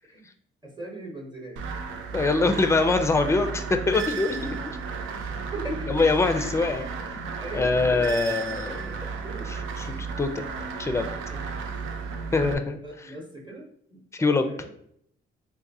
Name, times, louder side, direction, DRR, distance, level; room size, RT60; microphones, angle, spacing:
voice 1, 0.6-1.6 5.1-5.2 5.5-5.9 6.4-6.6 7.1-8.2 9.2-9.5 11.3-11.4 12.8-14.7, right 1 dB, 20° right, -1 dB, 0.9 m, -39 dB
sound 1, 1.6-12.5, right 5 dB, 85° right, 0.5 m, -33 dB
voice 2, 2.1-4.6 5.9-6.8 7.5-9.1 9.9-10.3 10.8-11.1 12.3-13.1 14.1-14.5, left 3 dB, 15° left, 7 dB, 0.4 m, -24 dB
3.6 x 2.6 x 2.6 m, 0.69 s
cardioid pair, 90°, 20 cm